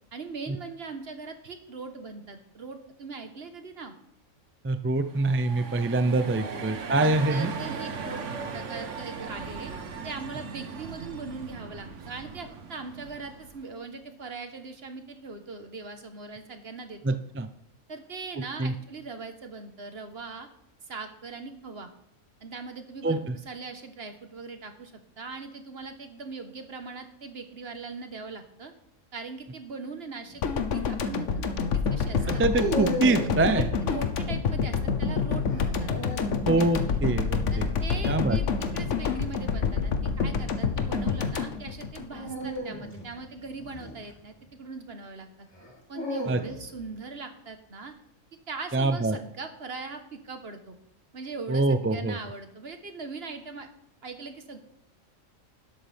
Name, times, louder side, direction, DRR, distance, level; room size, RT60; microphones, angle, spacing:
voice 1, 0.1-3.9 6.3-6.7 7.0-9.7 10.0-17.2 17.9-20.5 20.8-21.9 22.4-28.7 29.1-32.4 33.5-35.9 36.8-37.0 37.5-45.5 45.9-47.9 48.5-50.8 51.1-53.7 54.0-54.6, right 4 dB, 50° right, 7 dB, 1.5 m, -40 dB
voice 2, 4.6-7.5 17.0-17.5 18.6-18.7 23.0-23.3 32.4-33.7 36.4-37.7 38.1-38.4 46.3-46.4 48.7-49.2 51.5-52.2, right 2 dB, 20° right, 9 dB, 0.3 m, -25 dB
sound 1, 5.0-13.7, right 5 dB, 70° right, 1.4 m, -38 dB
sound 2, 30.3-30.6 32.1-33.4 35.5-36.5 38.9-39.3 42.1-44.5 45.5-46.8, right 1 dB, 20° left, 3.0 m, -34 dB
sound 3, 30.4-42.6 42.9-43.0, left 5 dB, 70° left, 1.2 m, -28 dB
12.0 x 11.5 x 3.5 m, 0.79 s
omnidirectional pair, 1.3 m